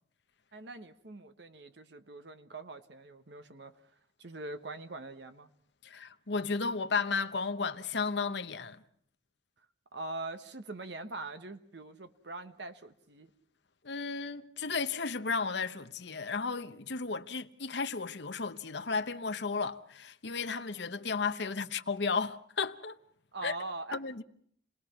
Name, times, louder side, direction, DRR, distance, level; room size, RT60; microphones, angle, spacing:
voice 1, 0.5-3.8 4.2-5.5 9.9-13.3 23.3-24.0, right 2 dB, 65° right, 1.3 m, -43 dB
voice 2, 5.8-8.8 13.8-23.0 23.4-23.5 23.9-24.2, left 4 dB, 65° left, 1.0 m, -34 dB
29.0 x 19.5 x 5.8 m
head